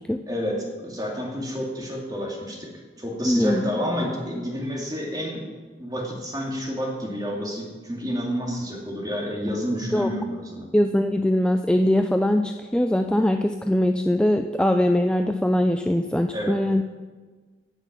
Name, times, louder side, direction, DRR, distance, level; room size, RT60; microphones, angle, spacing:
voice 1, 0.3-2.7 3.0-5.4 5.8-10.7 16.3-16.6, equal, 20° right, -1 dB, 2.2 m, -29 dB
voice 2, 3.2-3.7 9.9-10.1 10.7-16.8, left 1 dB, 5° left, 6 dB, 0.3 m, -22 dB
17.0 x 6.1 x 6.0 m, 1.4 s
head